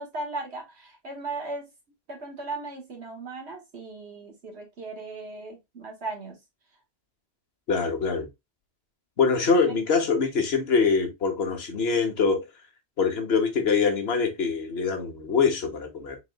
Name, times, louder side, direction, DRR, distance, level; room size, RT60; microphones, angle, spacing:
voice 1, 0.0-1.7 2.1-6.4, right 3 dB, 80° right, 1.8 m, -37 dB
voice 2, 7.7-8.3 9.2-12.4 13.0-16.2, left 5 dB, 70° left, 1.3 m, -24 dB
4.2 x 4.1 x 2.2 m
omnidirectional pair, 1.1 m